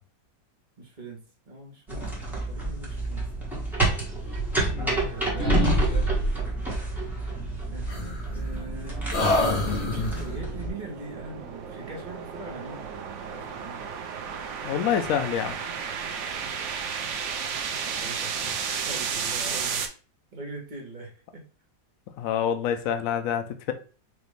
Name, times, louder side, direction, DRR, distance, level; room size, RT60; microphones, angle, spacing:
voice 1, 0.8-3.3 5.1-6.1 7.7-9.0 9.5-13.9 15.4-15.8 17.5-18.4 18.8-20.0 20.3-21.4 22.7-22.8, right 2 dB, 30° right, 1.0 m, -42 dB
sound 1, 1.9-10.7, right 2 dB, ahead, 1.1 m, -30 dB
sound 2, 4.2-5.1 5.4-6.5 7.9-8.7 9.1-10.4, left 1 dB, 40° left, 1.3 m, -26 dB
voice 2, 4.7-5.1 14.6-15.6 22.2-23.7, left 9 dB, 75° left, 0.8 m, -27 dB
sound 3, 6.6-19.9, right 6 dB, 70° right, 0.7 m, -34 dB
4.8 x 2.5 x 3.2 m
omnidirectional pair, 1.9 m